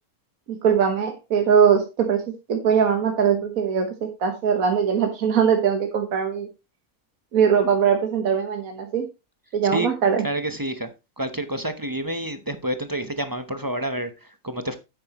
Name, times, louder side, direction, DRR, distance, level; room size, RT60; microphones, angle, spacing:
voice 1, 0.5-2.2 2.5-6.5 7.3-9.1 9.5-10.3, right 7 dB, 70° right, 1.7 m, -21 dB
voice 2, 10.2-10.9 11.2-14.1 14.4-14.8, right 1 dB, 20° right, 0.8 m, -28 dB
9.6 x 8.6 x 3.0 m
omnidirectional pair, 1.5 m